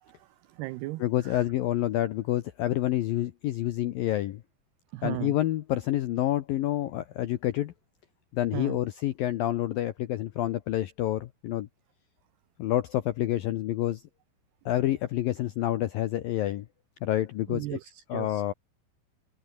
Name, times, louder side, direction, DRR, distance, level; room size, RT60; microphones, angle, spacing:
voice 1, 0.0-1.4 4.9-5.3 8.5-8.8 17.5-18.4, right 19 dB, 90° right, 2.3 m, -37 dB
voice 2, 1.0-4.4 5.0-7.7 8.3-11.7 12.6-14.0 14.7-16.7 17.0-17.7 18.1-18.5, left 13 dB, 80° left, 2.1 m, -28 dB
omnidirectional pair, 5.5 m